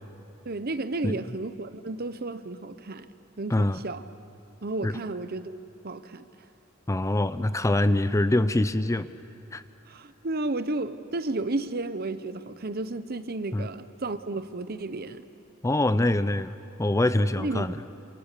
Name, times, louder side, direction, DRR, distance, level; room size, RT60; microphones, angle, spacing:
voice 1, 0.4-3.1 3.4-4.0 4.6-6.3 9.9-15.2 17.4-17.8, right 2 dB, 50° right, 12 dB, 0.9 m, -33 dB
voice 2, 3.5-3.8 4.8-5.0 6.9-9.1 9.5-9.6 13.5-13.7 15.6-17.8, left 1 dB, 15° left, 13 dB, 0.5 m, -24 dB
28.0 x 27.5 x 6.8 m, 2.7 s
head